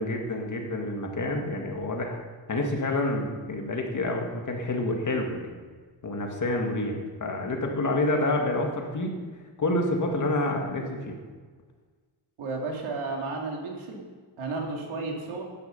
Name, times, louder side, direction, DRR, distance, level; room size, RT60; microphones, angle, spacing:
voice 1, 0.0-2.2 2.5-5.6 6.0-9.2 9.6-11.2, left 2 dB, 40° left, 2 dB, 1.9 m, -28 dB
voice 2, 12.4-14.1 14.4-15.4, right 3 dB, 90° right, 0 dB, 2.9 m, -33 dB
13.0 x 10.0 x 5.3 m, 1.5 s
wide cardioid pair, 135°, 47 cm